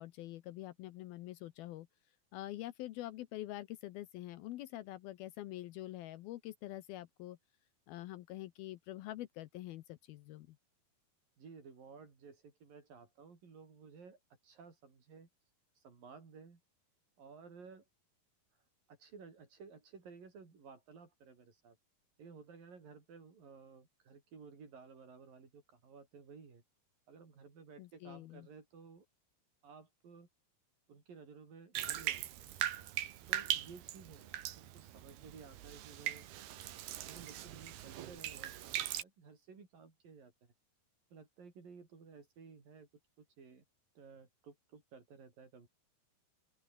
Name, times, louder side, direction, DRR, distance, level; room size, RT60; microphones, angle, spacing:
voice 1, 0.0-1.9 2.3-7.4 7.9-10.6 27.8-28.5, left 15 dB, 75° left, 2.5 m, -46 dB
voice 2, 11.4-15.3 15.8-16.6 17.2-17.9 18.9-21.8 22.2-26.6 27.1-29.0 29.6-30.3 30.9-32.5 33.3-36.3 36.8-40.5 41.1-42.9 43.2-43.6 43.9-45.7, right 5 dB, 55° right, 6.5 m, -55 dB
Bathtub (filling or washing), 31.8-39.0, right 12 dB, 70° right, 3.5 m, -40 dB
open air
omnidirectional pair, 4.8 m